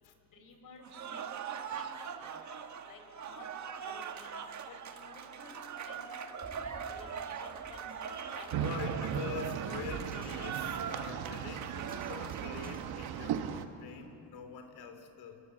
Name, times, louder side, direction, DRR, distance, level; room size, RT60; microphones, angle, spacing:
voice 1, 0.3-1.2 1.7-1.8 2.2-2.3 2.8-3.5 3.8-4.4 4.7-5.5 5.8-6.0 6.6-8.8, left 3 dB, 60° left, 5 dB, 4.9 m, -53 dB
Cheering / Applause, 0.8-13.4, right 7 dB, 50° right, 1.5 m, -42 dB
sound 1, 6.4-12.8, right 3 dB, 20° right, 2.0 m, -53 dB
voice 2, 8.5-15.4, left 7 dB, 80° left, 7 dB, 3.3 m, -44 dB
sound 2, 8.5-13.7, right 9 dB, 80° right, 1.5 m, -37 dB
24.0 x 23.0 x 7.8 m, 2.6 s
cardioid pair, 100°, 37 cm